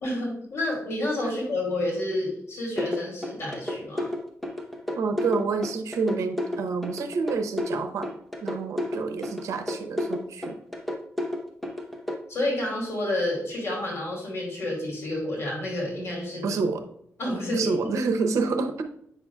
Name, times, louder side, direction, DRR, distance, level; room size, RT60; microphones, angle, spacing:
voice 1, 0.0-4.1 12.3-16.6 17.2-17.7, left 1 dB, 60° left, -2 dB, 2.6 m, -29 dB
sound 1, 2.8-12.2, left 1 dB, ahead, 0.7 m, -31 dB
voice 2, 5.0-8.1 8.4-10.6 16.4-16.8 17.5-18.8, right 4 dB, 85° right, 7 dB, 0.7 m, -28 dB
8.4 x 5.8 x 2.3 m, 0.72 s
wide cardioid pair, 145°, 5 cm